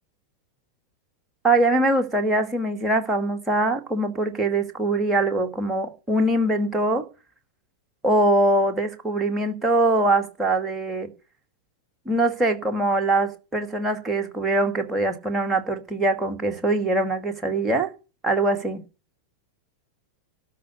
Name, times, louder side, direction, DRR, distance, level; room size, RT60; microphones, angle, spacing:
voice 1, 1.4-7.0 8.0-11.1 12.1-17.9 18.2-18.8, right 2 dB, 10° right, 2.3 m, -22 dB
12.5 x 5.9 x 9.5 m
figure-of-eight pair, 90°, 0 cm